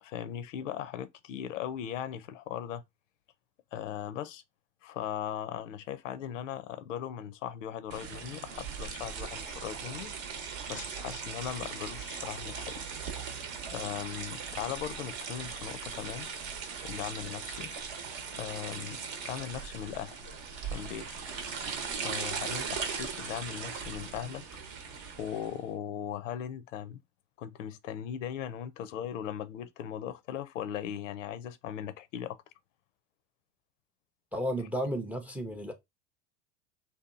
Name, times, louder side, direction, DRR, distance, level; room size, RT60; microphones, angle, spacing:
voice 1, 0.0-2.8 3.7-4.4 4.8-10.4 10.7-12.9 13.7-16.3 16.8-17.7 18.4-19.0 19.2-20.2 20.6-21.1 22.0-24.4 25.2-27.0 27.4-32.4, left 10 dB, 85° left, 0.5 m, -38 dB
sound 1, 7.9-25.6, right 6 dB, 60° right, 0.8 m, -39 dB
voice 2, 34.3-35.7, equal, 5° right, 0.3 m, -33 dB
2.7 x 2.2 x 2.4 m
hypercardioid pair, 95°, 37 cm